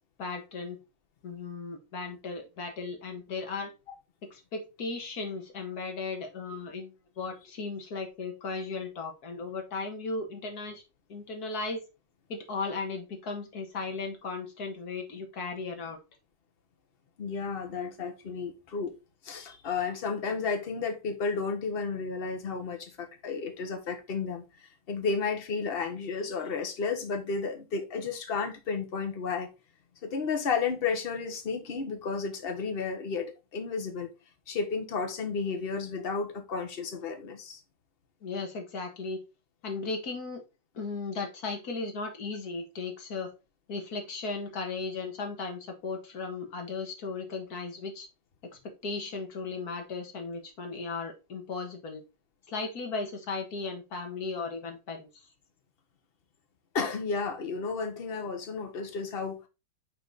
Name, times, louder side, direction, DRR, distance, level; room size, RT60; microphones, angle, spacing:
voice 1, 0.2-0.8 1.2-3.7 4.3-10.8 11.1-11.8 12.3-16.0 38.2-39.2 39.6-40.4 40.7-43.3 43.7-48.1 48.6-52.0 52.5-55.1, left 4 dB, 60° left, 1.9 m, -36 dB
voice 2, 17.2-18.9 19.2-29.5 30.0-34.1 34.5-37.6 56.7-59.4, left 5 dB, 40° left, 1.1 m, -32 dB
6.0 x 3.9 x 4.0 m
omnidirectional pair, 2.0 m